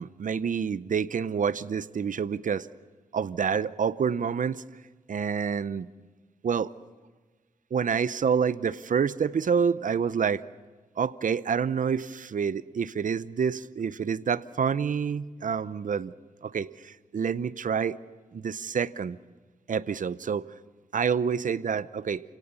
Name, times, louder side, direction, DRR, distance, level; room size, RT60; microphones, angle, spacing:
voice 1, 0.0-2.7 3.1-4.6 5.1-5.9 6.4-6.7 7.7-10.4 11.0-16.1 16.4-18.0 18.3-19.2 19.7-20.5 20.9-22.2, right 6 dB, 65° right, 16 dB, 0.6 m, -28 dB
28.5 x 17.5 x 7.0 m, 1.3 s
wide cardioid pair, 90°, 15 cm